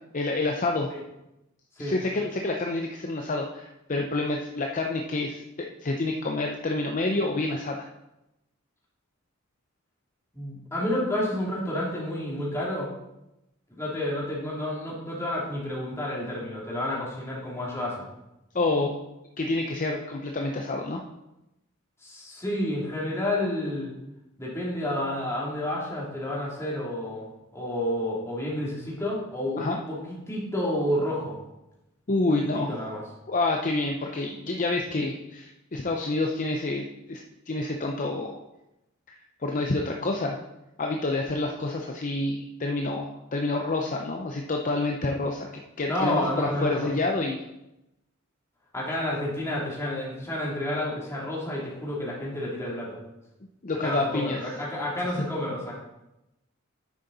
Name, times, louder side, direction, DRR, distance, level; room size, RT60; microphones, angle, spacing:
voice 1, 0.1-0.9 1.8-7.9 18.5-19.0 19.4-21.0 29.6-29.8 32.1-32.7 33.3-38.4 39.4-40.4 40.8-47.4 53.6-54.4, left 2 dB, 40° left, 2 dB, 0.7 m, -28 dB
voice 2, 10.3-12.9 13.7-18.0 22.0-23.9 24.4-31.4 32.5-33.0 45.9-46.9 48.7-53.0 53.8-55.8, left 1 dB, 15° left, -5 dB, 2.8 m, -30 dB
9.8 x 6.8 x 4.0 m, 0.91 s
head